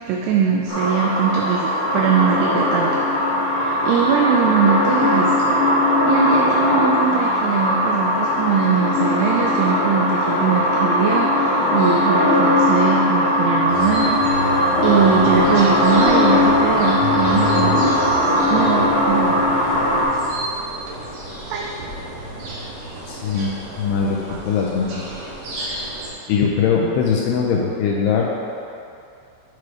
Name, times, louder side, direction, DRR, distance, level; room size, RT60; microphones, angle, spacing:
voice 1, 0.1-3.0 3.4-5.5 6.1-14.5 14.8-17.9 18.5-19.7 21.5-21.7 24.3-24.4, right 7 dB, 90° right, 0 dB, 2.3 m, -21 dB
sound 1, 0.7-20.0, left 1 dB, 70° left, 3.4 m, -19 dB
sound 2, 13.7-26.1, right 2 dB, 60° right, 2.5 m, -31 dB
voice 2, 23.1-23.5 23.8-24.2 24.5-24.9 26.3-28.3, left 6 dB, 85° left, -2 dB, 2.3 m, -20 dB
8.2 x 4.7 x 4.9 m, 2.5 s
omnidirectional pair, 5.3 m